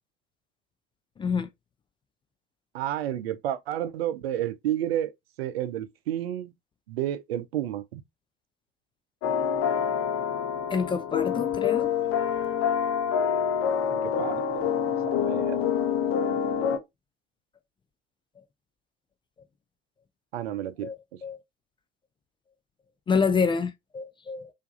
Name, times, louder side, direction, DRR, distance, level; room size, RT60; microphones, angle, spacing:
voice 1, 1.2-1.5 10.7-11.9 20.8-21.0 21.2-21.4 23.1-24.5, left 5 dB, 15° left, 0.4 m, -27 dB
voice 2, 2.7-5.1 5.4-6.5 6.9-8.0 13.9-15.7 20.3-21.2, right 12 dB, 65° right, 0.6 m, -31 dB
sound 1, 9.2-16.8, left 8 dB, 40° left, 0.8 m, -26 dB
4.5 x 2.6 x 2.6 m
figure-of-eight pair, 65°, 32 cm